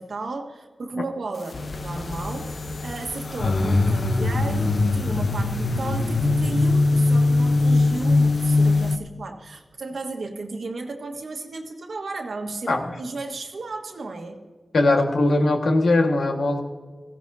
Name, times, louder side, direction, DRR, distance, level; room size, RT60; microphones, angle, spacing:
voice 1, 0.0-14.4, right 3 dB, 85° right, 4 dB, 1.5 m, -34 dB
sound 1, 1.5-9.0, left 2 dB, 70° left, 0.8 m, -21 dB
voice 2, 14.7-16.6, left 2 dB, 90° left, 3 dB, 1.5 m, -20 dB
17.0 x 15.5 x 2.7 m, 1.4 s
wide cardioid pair, 65°, 0 cm